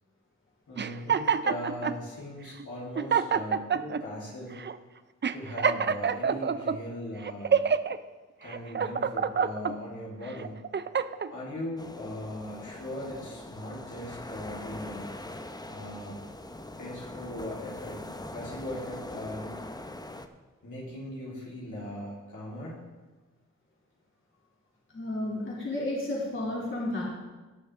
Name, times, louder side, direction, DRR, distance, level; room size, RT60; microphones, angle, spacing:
voice 1, 0.7-4.6 5.3-7.6 8.4-10.5 11.3-15.1 15.7-16.2 16.8-18.0 18.3-19.5 20.6-22.8, left 1 dB, 70° left, -6 dB, 3.9 m, -39 dB
sound 1, 0.8-2.0 2.6-2.7 3.0-4.0 4.6-4.8 5.2-6.8 7.2-8.0 8.5-9.7 10.3-11.3, right 6 dB, 35° right, 0.5 m, -27 dB
sound 2, 11.8-20.3, left 1 dB, 10° left, 0.8 m, -42 dB
voice 2, 24.9-27.0, left 1 dB, 40° left, -5 dB, 3.3 m, -32 dB
17.5 x 6.5 x 3.8 m, 1.2 s
cardioid pair, 50°, 32 cm